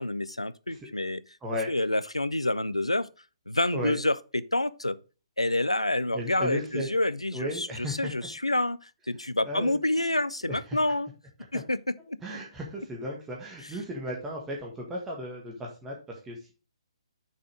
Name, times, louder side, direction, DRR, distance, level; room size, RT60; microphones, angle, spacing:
voice 1, 0.0-1.2 1.7-3.1 3.5-5.0 5.4-11.1 11.5-11.8 12.1-12.2, left 1 dB, 85° left, 0.5 m, -28 dB
voice 2, 1.4-1.7 3.7-4.0 6.1-6.9 7.3-8.1 9.4-9.8 10.5-10.8 11.5-11.6 12.2-16.5, equal, 10° right, 1.6 m, -35 dB
6.4 x 5.6 x 5.0 m
figure-of-eight pair, 130°, 3 cm